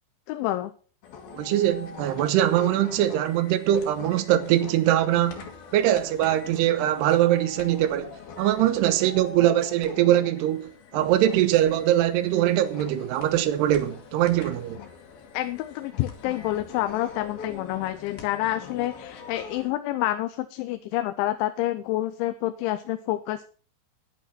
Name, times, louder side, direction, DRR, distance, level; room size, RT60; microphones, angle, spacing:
voice 1, 0.3-0.7 15.3-23.4, left 15 dB, 90° left, 3.1 m, -28 dB
sound 1, 1.0-19.7, left 6 dB, 60° left, 3.3 m, -43 dB
voice 2, 1.3-5.5 5.7-8.1 8.4-14.8, right 12 dB, 80° right, 2.7 m, -22 dB
10.5 x 9.1 x 5.9 m
omnidirectional pair, 5.2 m